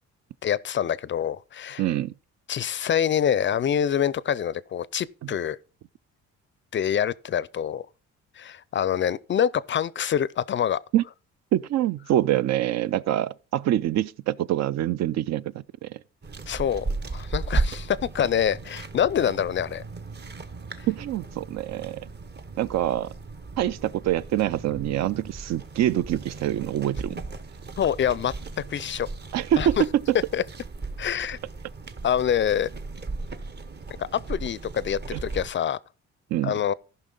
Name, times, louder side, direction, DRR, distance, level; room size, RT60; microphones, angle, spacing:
voice 1, 0.4-1.8 2.5-5.6 6.7-7.9 8.4-10.8 16.5-19.8 27.8-28.3 28.7-29.1 29.6-29.7 30.3-30.4 31.0-31.4 32.0-32.7 34.0-35.8 36.4-36.7, left 9 dB, 40° left, 0.4 m, -26 dB
voice 2, 1.8-2.1 5.2-5.3 10.9-11.0 11.5-16.0 20.9-22.1 22.6-23.1 23.6-27.2 29.3-30.2 35.1-35.2 36.3-36.6, right 12 dB, 60° right, 0.4 m, -25 dB
sound 1, 16.2-35.5, right 3 dB, 35° right, 0.9 m, -36 dB
14.5 x 5.6 x 3.8 m
cardioid pair, 90°, 30 cm